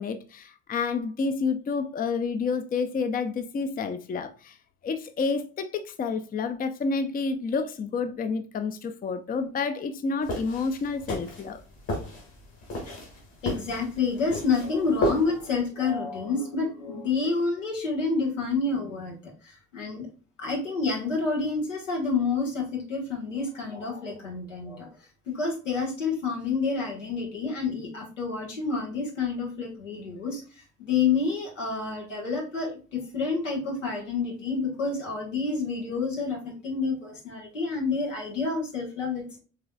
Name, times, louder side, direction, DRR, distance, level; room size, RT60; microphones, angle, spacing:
voice 1, 0.0-4.6 4.8-11.6, left 4 dB, 25° left, 0.5 m, -29 dB
sound 1, 10.2-15.6, left 1 dB, 50° left, 2.1 m, -33 dB
voice 2, 13.4-19.2 19.4-20.1 20.4-24.9 25.3-39.4, left 4 dB, 80° left, 1.3 m, -29 dB
4.8 x 3.8 x 2.2 m
figure-of-eight pair, 45°, 36 cm